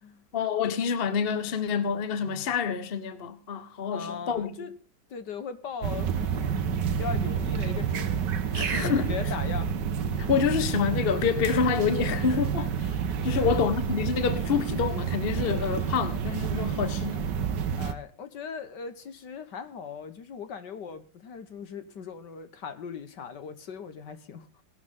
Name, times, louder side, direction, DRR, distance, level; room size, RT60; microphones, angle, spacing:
voice 1, 0.3-4.5 8.5-9.1 10.2-13.0 13.2-17.3, left 6 dB, 35° left, 1.3 m, -27 dB
voice 2, 3.9-4.7 5.1-6.6 6.9-8.2 8.5-9.8 13.3-13.6 17.8-24.6, left 6 dB, 60° left, 1.8 m, -39 dB
sound 1, 5.8-17.9, right 7 dB, 65° right, 1.7 m, -29 dB
18.5 x 12.0 x 3.6 m
omnidirectional pair, 2.1 m